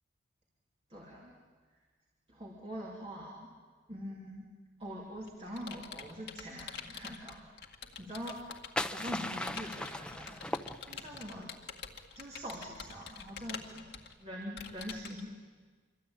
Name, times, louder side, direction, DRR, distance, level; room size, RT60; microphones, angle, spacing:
voice 1, 0.9-1.3 2.3-3.5 3.9-4.5 4.8-7.4 8.0-8.4 8.9-10.4 10.8-11.5 12.1-13.9 14.2-15.3, equal, 30° right, -3 dB, 3.2 m, -43 dB
Computer keyboard, 4.8-8.9 9.5-15.2, left 6 dB, 55° left, 2.0 m, -47 dB
sound 1, 8.2-11.3, left 1 dB, 5° left, 0.8 m, -38 dB
27.0 x 24.0 x 8.9 m, 1.5 s
head